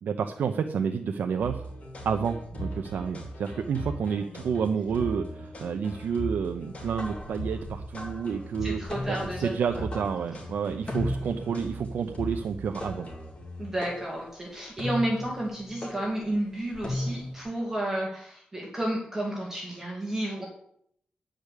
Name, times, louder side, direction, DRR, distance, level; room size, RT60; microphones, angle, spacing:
voice 1, 0.0-1.7 2.0-8.8 9.1-13.1, right 6 dB, 85° right, 5 dB, 0.7 m, -30 dB
sound 1, 1.4-13.9, right 1 dB, 45° left, 3.6 m, -38 dB
sound 2, 6.7-17.5, left 1 dB, 30° left, 2.3 m, -38 dB
voice 2, 8.6-9.8 13.6-20.5, right 1 dB, 15° right, -3 dB, 2.3 m, -31 dB
10.5 x 5.1 x 8.2 m, 0.68 s
wide cardioid pair, 170°, 3 cm